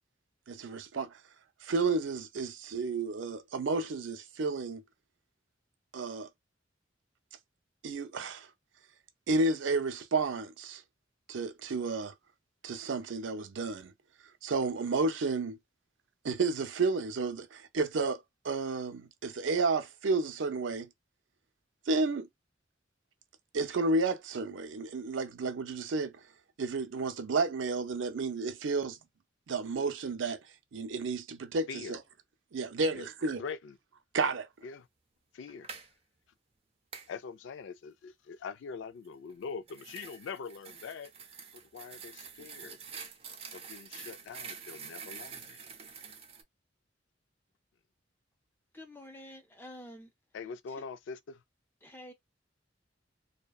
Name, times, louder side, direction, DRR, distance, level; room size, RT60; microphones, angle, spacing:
voice 1, 0.5-1.2 1.6-4.8 5.9-6.3 7.8-8.5 9.3-10.8 11.3-12.1 12.6-13.9 14.4-15.6 16.2-20.9 21.9-22.3 23.5-26.1 26.6-29.0 29.5-30.4 30.7-32.0 32.5-33.4 34.1-34.5, right 3 dB, 90° right, 0.5 m, -31 dB
voice 2, 32.8-33.8 34.6-34.9 35.3-35.7 37.1-41.1 41.5-42.8 43.5-45.6 50.3-51.4, left 5 dB, 80° left, 0.3 m, -43 dB
sound 1, 35.5-35.9 36.9-37.1 39.3-46.4, right 6 dB, 30° right, 0.5 m, -47 dB
voice 3, 48.7-50.1 50.7-50.8 51.8-52.1, left 1 dB, 10° left, 0.6 m, -48 dB
2.7 x 2.2 x 2.3 m
head